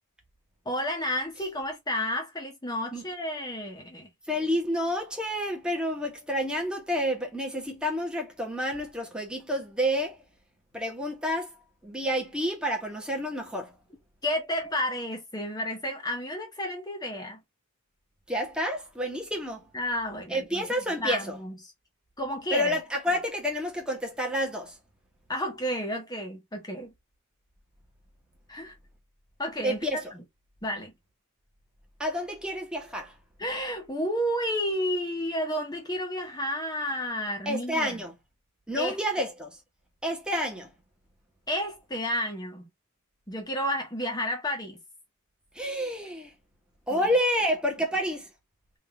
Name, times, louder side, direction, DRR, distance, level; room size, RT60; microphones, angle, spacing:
voice 1, 0.6-4.1 14.2-17.4 19.7-21.6 22.2-22.8 25.3-26.9 28.5-28.7 29.4-29.8 30.1-30.2 30.6-30.9 33.4-38.0 38.8-39.0 41.5-42.7 43.3-44.8 46.9-47.1, equal, 20° left, 1.1 m, -31 dB
voice 2, 4.3-10.2 10.7-11.5 11.8-13.7 18.3-19.7 20.3-21.4 22.5-24.8 29.6-30.0 32.0-33.1 37.4-38.1 38.7-39.6 40.0-40.7 45.5-46.3 46.9-48.3, equal, 5° right, 1.3 m, -29 dB
3.7 x 2.8 x 3.5 m
head